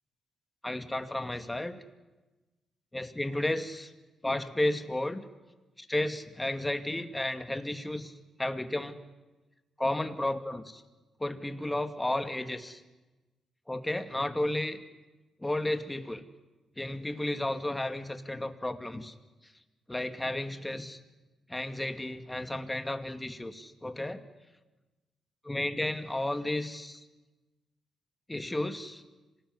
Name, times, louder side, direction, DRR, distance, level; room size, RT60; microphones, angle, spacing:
voice 1, 0.6-1.8 2.9-3.9 4.2-5.2 5.8-8.1 8.4-9.0 9.8-10.8 11.2-12.8 13.7-14.8 15.4-16.2 16.8-19.1 19.9-21.0 21.5-24.2 25.4-27.0 28.3-29.0, left 1 dB, 15° left, 8 dB, 2.4 m, -33 dB
26.5 x 19.5 x 9.7 m, 1.2 s
cardioid pair, 65°, 0 cm